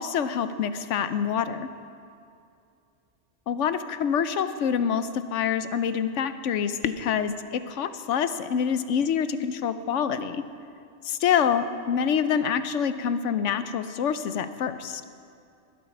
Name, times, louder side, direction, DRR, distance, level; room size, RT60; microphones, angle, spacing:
voice 1, 0.0-1.7 3.5-10.4 11.0-15.0, left 7 dB, 80° left, 11 dB, 1.0 m, -26 dB
21.5 x 8.3 x 5.9 m, 2.5 s
omnidirectional pair, 1.2 m